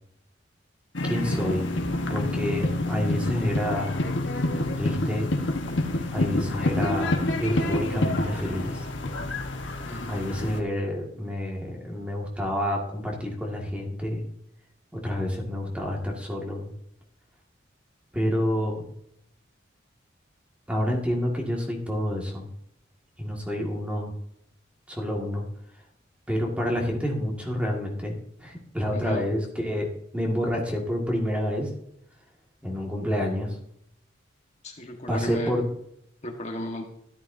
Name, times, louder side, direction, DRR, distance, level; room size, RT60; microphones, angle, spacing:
sound 1, 0.9-10.6, left 1 dB, 75° left, 1.3 m, -28 dB
voice 1, 1.0-1.7 2.1-3.9 4.8-5.4 6.1-8.9 10.1-14.3 14.9-16.7 18.1-18.9 20.7-22.5 23.2-24.1 24.9-25.5 26.3-31.7 32.6-33.6 35.1-35.6, equal, 5° right, -1 dB, 1.8 m, -28 dB
voice 2, 9.8-10.2 28.9-29.3 34.6-35.5 36.2-36.8, left 1 dB, 35° left, 2 dB, 1.4 m, -34 dB
13.0 x 11.5 x 2.7 m, 0.75 s
head